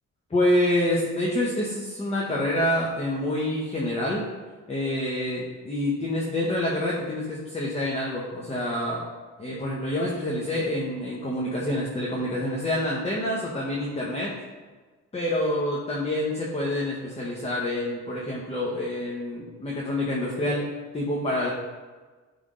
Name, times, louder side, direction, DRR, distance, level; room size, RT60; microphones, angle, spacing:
voice 1, 0.3-4.2 4.7-9.0 9.4-14.3 15.1-20.6 20.9-21.5, left 1 dB, 20° left, -4 dB, 1.1 m, -27 dB
9.9 x 3.6 x 3.9 m, 1.3 s
cardioid pair, 110°, 31 cm